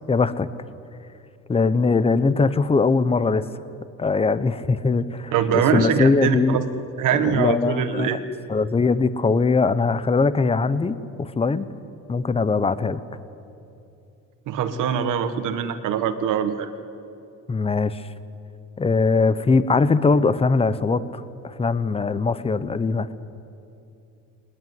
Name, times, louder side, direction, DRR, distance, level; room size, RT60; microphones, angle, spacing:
voice 1, 0.1-0.5 1.5-3.5 4.0-6.6 7.1-8.2 8.5-11.7 12.1-13.0 17.5-18.0 18.8-23.1, left 4 dB, 20° left, 15 dB, 0.8 m, -21 dB
voice 2, 5.3-6.6 7.0-8.2 14.5-16.7, right 8 dB, 70° right, 8 dB, 1.6 m, -23 dB
21.5 x 20.0 x 9.5 m, 2.7 s
cardioid pair, 140°, 32 cm